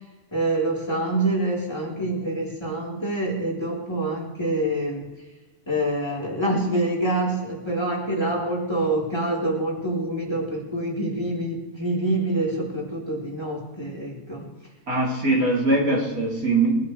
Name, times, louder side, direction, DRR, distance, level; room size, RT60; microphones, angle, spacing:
voice 1, 0.3-5.1 5.7-14.5, right 1 dB, 15° left, -3 dB, 4.4 m, -26 dB
voice 2, 14.9-16.8, right 2 dB, 70° right, -3 dB, 4.2 m, -21 dB
23.5 x 12.0 x 3.4 m, 1.1 s
omnidirectional pair, 1.6 m